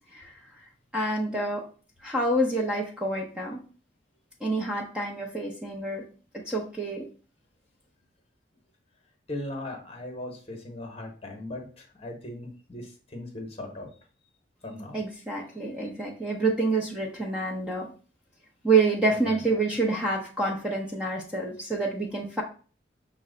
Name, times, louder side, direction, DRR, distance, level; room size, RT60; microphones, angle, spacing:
voice 1, 0.9-1.7 2.0-3.6 4.4-6.0 6.3-7.1 14.9-17.9 18.6-22.4, right 3 dB, 5° right, -2 dB, 0.6 m, -27 dB
voice 2, 9.3-13.9 14.6-15.0 16.0-16.1 19.1-19.4, left 1 dB, 35° left, 3 dB, 1.0 m, -38 dB
5.8 x 2.2 x 3.7 m, 0.39 s
head